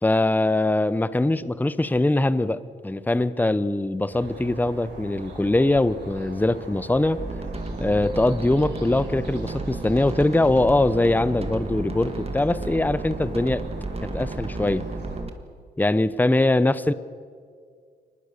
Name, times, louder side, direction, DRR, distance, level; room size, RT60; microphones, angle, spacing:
voice 1, 0.0-7.2 7.8-13.6 14.1-14.9 15.8-16.9, left 2 dB, 10° left, 16 dB, 0.8 m, -22 dB
sound 1, 4.1-15.2, right 2 dB, 70° right, 6.9 m, -40 dB
sound 2, 7.2-15.3, right 3 dB, 35° right, 2.1 m, -33 dB
23.0 x 20.0 x 6.8 m, 2.1 s
cardioid pair, 65°, 19 cm